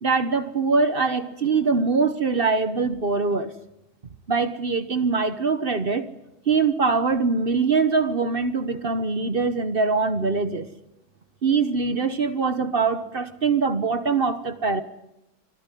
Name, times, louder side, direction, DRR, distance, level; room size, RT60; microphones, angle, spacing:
voice 1, 0.0-3.5 4.3-6.1 6.5-10.7 11.4-14.8, right 4 dB, 40° right, 12 dB, 0.9 m, -23 dB
25.5 x 12.5 x 9.1 m, 0.89 s
omnidirectional pair, 2.2 m